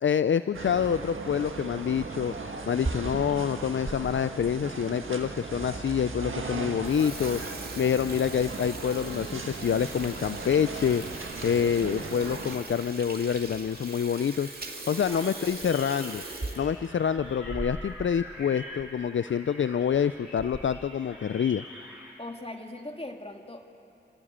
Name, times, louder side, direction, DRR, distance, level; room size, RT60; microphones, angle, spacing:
voice 1, 0.0-16.2 16.6-21.6, left 8 dB, 70° left, 13 dB, 0.4 m, -27 dB
sound 1, 0.5-12.6, right 3 dB, 80° right, 1.7 m, -37 dB
Water tap faucet / Sink (filling or washing), 2.8-4.0 4.5-4.6 5.3-5.4 5.7-5.8 6.2-6.4 6.7-18.1 18.4-18.5 18.8-18.9 19.7-20.0 20.4-20.8, right 2 dB, 50° right, 2.6 m, -40 dB
sound 2, 14.8-22.1, left 1 dB, 5° right, 7.7 m, -46 dB
voice 2, 14.9-15.5 22.2-23.7, left 2 dB, 30° left, 4 dB, 2.1 m, -40 dB
27.5 x 15.5 x 8.8 m, 2.8 s
cardioid pair, 45°, 21 cm